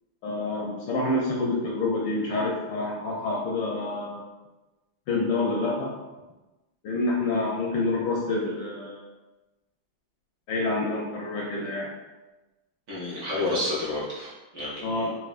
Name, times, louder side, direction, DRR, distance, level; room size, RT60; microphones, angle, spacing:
voice 1, 0.2-4.2 5.1-5.9 6.8-9.0 10.5-11.9 14.8-15.1, left 2 dB, 75° left, -2 dB, 1.1 m, -27 dB
voice 2, 12.9-15.1, left 2 dB, 55° right, -8 dB, 1.2 m, -30 dB
4.1 x 2.4 x 2.4 m, 1.1 s
omnidirectional pair, 2.2 m